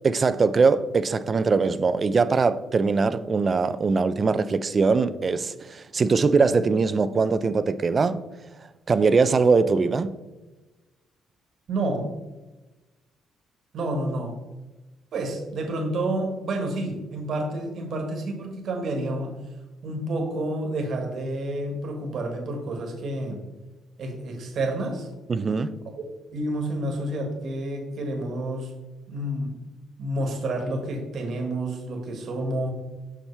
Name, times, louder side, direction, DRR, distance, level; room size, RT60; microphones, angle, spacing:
voice 1, 0.0-8.2 8.9-10.1 25.3-25.8, right 4 dB, 30° right, 0.3 m, -22 dB
voice 2, 11.7-12.2 13.7-14.4 15.1-19.4 19.8-23.4 24.0-25.1 25.9-26.1 26.3-28.7 29.1-29.6 30.0-32.7, right 1 dB, 55° right, 1.4 m, -29 dB
7.2 x 5.8 x 3.3 m
cardioid pair, 140°, 0 cm